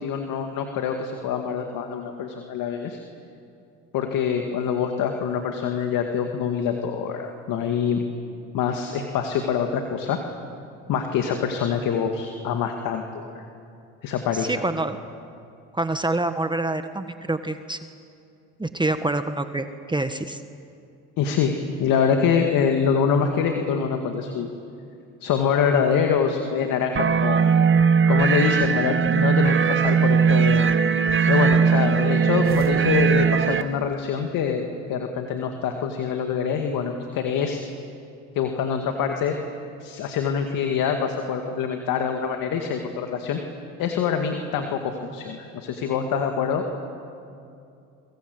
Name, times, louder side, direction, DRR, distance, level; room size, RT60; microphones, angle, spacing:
voice 1, 0.0-3.0 3.9-8.0 8.5-10.2 10.9-13.0 13.3-13.5 14.0-14.6 21.2-21.5 21.8-24.5 25.2-27.4 28.1-30.7 31.3-37.6 38.3-39.3 39.8-43.4 43.8-44.8 45.1-46.8, left 7 dB, 65° left, 4 dB, 2.3 m, -25 dB
voice 2, 14.4-15.0 15.7-17.8 18.6-20.4, right 2 dB, 15° right, 8 dB, 1.4 m, -26 dB
sound 1, 27.0-33.6, right 6 dB, 35° right, 1.3 m, -19 dB
sound 2, 32.4-34.0, right 7 dB, 50° right, 2.3 m, -37 dB
29.0 x 23.5 x 8.1 m, 2.6 s
supercardioid pair, 70°, 35 cm